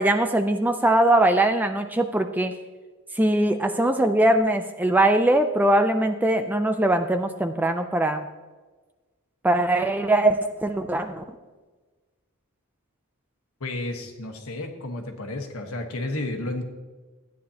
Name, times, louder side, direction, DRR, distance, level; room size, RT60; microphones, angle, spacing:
voice 1, 0.0-2.5 3.1-8.2 9.4-11.4, right 1 dB, 10° right, 7 dB, 0.4 m, -21 dB
voice 2, 13.6-16.6, left 2 dB, 70° left, 4 dB, 1.3 m, -32 dB
14.0 x 9.4 x 2.8 m, 1.3 s
head